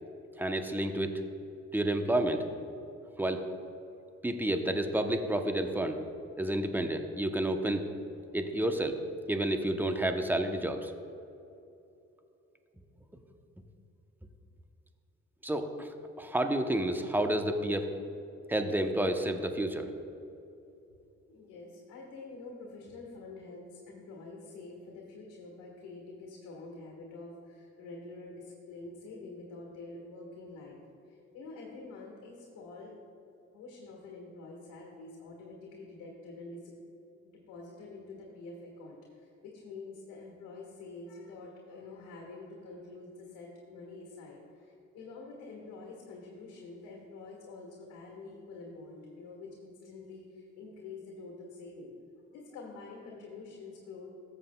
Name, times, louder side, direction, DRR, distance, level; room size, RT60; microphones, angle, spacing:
voice 1, 0.4-1.2 1.7-2.4 3.2-3.4 4.2-6.0 6.4-7.9 8.3-9.0 9.3-10.9 15.4-17.9 18.5-19.9, right 1 dB, 5° right, 6 dB, 0.8 m, -30 dB
voice 2, 21.3-30.8 31.1-32.9 33.5-36.8 37.2-51.9 52.3-54.1, left 3 dB, 85° left, -2 dB, 1.6 m, -47 dB
13.5 x 7.4 x 2.3 m, 2.8 s
supercardioid pair, 70°, 30 cm